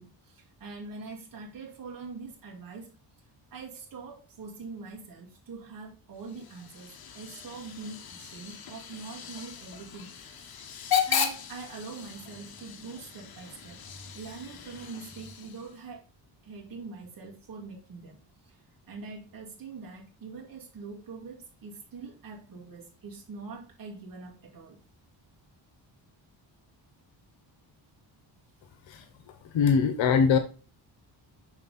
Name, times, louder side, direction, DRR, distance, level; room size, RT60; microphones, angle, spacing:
voice 1, 0.0-3.0 3.5-10.7 11.1-16.1 16.4-18.6 18.9-24.8, right 4 dB, 50° right, 2.3 m, -43 dB
Hiss / Train / Alarm, 6.2-15.8, left 8 dB, 55° left, 1.3 m, -36 dB
voice 2, 29.5-30.4, left 6 dB, 85° left, 1.0 m, -22 dB
6.5 x 5.4 x 4.0 m
cardioid pair, 115°, 44 cm